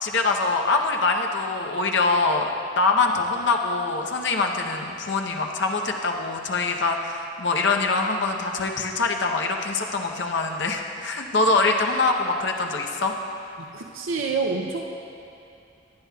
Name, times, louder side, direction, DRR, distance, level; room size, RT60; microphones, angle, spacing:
voice 1, 0.0-13.1, left 3 dB, 65° left, 2 dB, 0.8 m, -24 dB
voice 2, 13.6-14.8, right 4 dB, 85° right, 1 dB, 0.6 m, -27 dB
16.0 x 10.5 x 2.3 m, 2.7 s
head